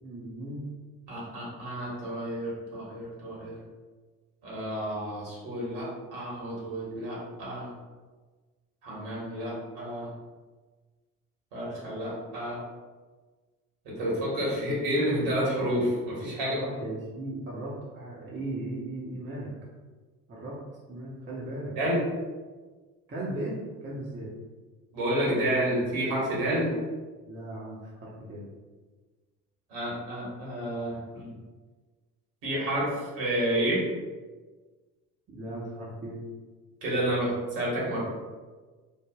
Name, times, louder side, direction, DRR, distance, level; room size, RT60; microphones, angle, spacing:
voice 1, 0.0-0.6 16.4-19.5 20.3-20.6 20.9-21.7 23.1-24.3 27.3-28.4 35.3-36.2, right 1 dB, 25° right, -6 dB, 0.7 m, -37 dB
voice 2, 1.1-3.6 4.4-7.7 8.8-10.1 11.5-12.6 13.8-16.6 21.7-22.0 24.9-26.7 29.7-31.3 32.4-33.8 36.8-38.0, right 1 dB, 60° right, -6 dB, 1.4 m, -30 dB
3.3 x 2.0 x 2.3 m, 1.3 s
figure-of-eight pair, 60°, 46 cm